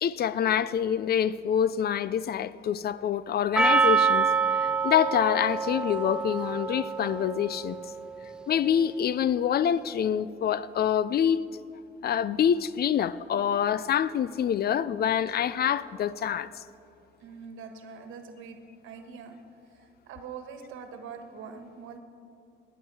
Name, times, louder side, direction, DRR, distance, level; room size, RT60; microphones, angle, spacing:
voice 1, 0.0-4.3 4.6-7.8 8.5-11.5 12.0-16.6, left 9 dB, 50° left, 0.5 m, -26 dB
Percussion, 3.6-7.9, right 5 dB, 5° right, 0.6 m, -26 dB
voice 2, 17.2-18.6 18.8-19.4 19.7-22.0, right 6 dB, 90° right, 1.3 m, -43 dB
20.0 x 9.0 x 4.8 m
cardioid pair, 90°, 20 cm